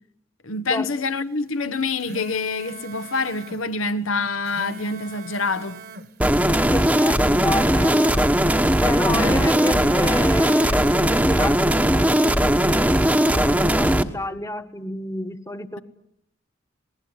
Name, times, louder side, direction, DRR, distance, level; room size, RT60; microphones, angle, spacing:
voice 1, 0.4-5.8 9.1-9.6, left 3 dB, 85° left, 1.3 m, -26 dB
sound 1, 1.8-3.6 4.3-6.1 7.0-8.8 9.4-11.1, right 1 dB, 45° right, 1.5 m, -39 dB
sound 2, 6.2-14.0, equal, 5° right, 1.1 m, -19 dB
voice 2, 6.7-8.4 8.8-15.8, left 1 dB, 15° left, 1.2 m, -30 dB
27.5 x 20.0 x 9.8 m
head